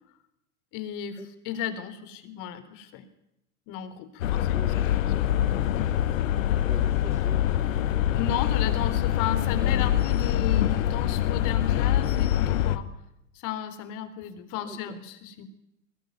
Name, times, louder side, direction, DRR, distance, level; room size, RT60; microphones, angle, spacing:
voice 1, 0.7-3.0 3.7-5.0 5.7-6.0 8.1-12.9 13.3-15.4, left 9 dB, 50° left, 11 dB, 3.9 m, -34 dB
sound 1, 4.2-12.8, left 11 dB, 70° left, 1.9 m, -24 dB
voice 2, 4.5-5.0 6.6-7.8 14.6-15.0, right 2 dB, 5° right, 5 dB, 2.3 m, -44 dB
22.5 x 19.0 x 9.4 m, 0.83 s
hypercardioid pair, 100°, 40 cm